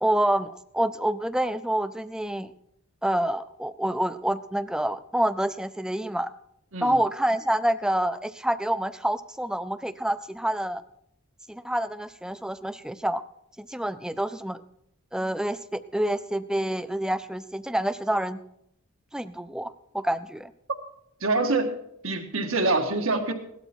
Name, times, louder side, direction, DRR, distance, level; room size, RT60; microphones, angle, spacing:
voice 1, 0.0-2.5 3.0-6.3 6.8-10.8 11.5-13.2 13.6-14.6 15.1-18.4 19.1-20.5, right 1 dB, 5° right, 13 dB, 0.4 m, -27 dB
voice 2, 21.2-21.8 22.0-23.3, right 3 dB, 80° right, 5 dB, 1.8 m, -25 dB
17.0 x 12.0 x 4.5 m, 0.75 s
head